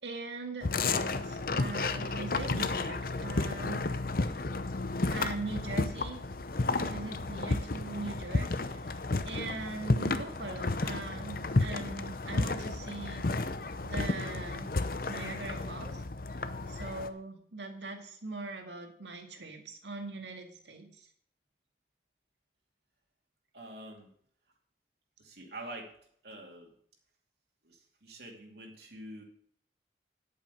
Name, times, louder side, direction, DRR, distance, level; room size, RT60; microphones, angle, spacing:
voice 1, 0.0-3.9 5.1-6.2 6.7-13.3 13.8-14.7 15.1-16.0 16.3-16.4 16.7-21.1, right 3 dB, 85° right, 4 dB, 2.0 m, -41 dB
sound 1, 0.6-17.1, left 3 dB, 55° left, 0.7 m, -32 dB
voice 2, 23.5-24.1 25.2-25.9 26.2-26.7 27.6-29.2, right 1 dB, 70° right, 0 dB, 2.5 m, -46 dB
10.5 x 8.5 x 5.2 m, 0.63 s
head